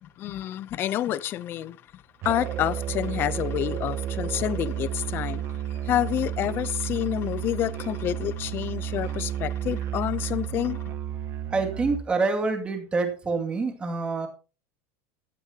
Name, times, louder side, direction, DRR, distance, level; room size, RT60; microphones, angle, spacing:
voice 1, 0.0-5.4 5.7-10.9, left 12 dB, 25° left, 0.6 m, -29 dB
Musical instrument, 2.2-12.1, right 10 dB, 30° right, 0.8 m, -32 dB
voice 2, 11.5-14.3, right 3 dB, 10° right, 2.3 m, -26 dB
15.0 x 13.0 x 2.9 m
supercardioid pair, 180°, 8 cm